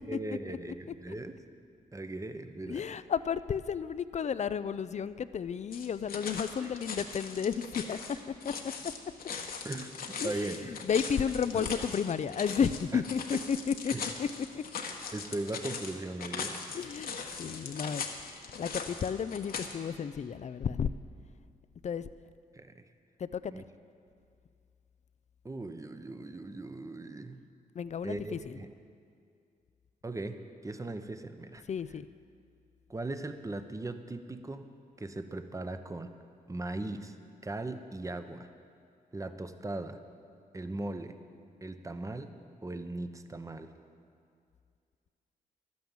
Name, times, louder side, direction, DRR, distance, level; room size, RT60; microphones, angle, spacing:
voice 1, 0.0-1.3 1.9-2.8 6.6-6.7 9.6-9.9 10.2-10.8 11.5-11.7 12.9-13.0 13.3-13.4 13.9-14.1 15.1-16.6 22.5-22.8 23.5-23.6 25.4-27.4 28.0-28.7 30.0-31.6 32.9-34.7 35.0-36.1 36.5-37.2 37.4-38.5 39.1-40.0 40.5-41.1 41.6-42.3 42.6-43.7, right 2 dB, 20° right, 9 dB, 0.9 m, -38 dB
voice 2, 2.7-8.0 8.3-8.5 10.2-13.9 14.2-14.3 14.5-14.6 16.7-18.0 18.6-20.9 21.8-22.1 23.2-23.6 27.7-28.6 31.7-32.1, left 7 dB, 45° left, 15 dB, 0.4 m, -32 dB
sound 1, 5.7-19.7, left 5 dB, 70° left, 1.3 m, -40 dB
11.5 x 9.4 x 7.2 m, 2.3 s
cardioid pair, 60°, 16 cm